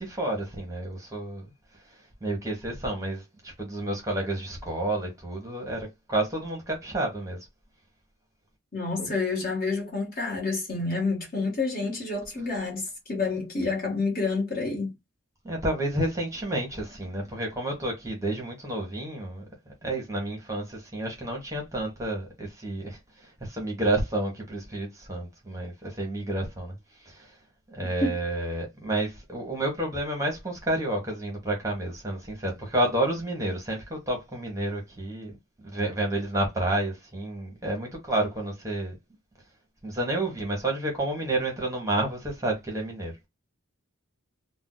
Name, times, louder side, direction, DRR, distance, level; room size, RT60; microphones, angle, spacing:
voice 1, 0.0-1.5 2.2-7.4 15.4-19.4 19.8-23.0 23.4-26.7 27.0-27.3 27.7-35.4 35.6-38.9 39.8-43.1, right 1 dB, 15° right, 0.8 m, -30 dB
voice 2, 8.7-14.9 27.8-28.2, left 3 dB, 45° left, 1.2 m, -29 dB
2.5 x 2.1 x 3.7 m
head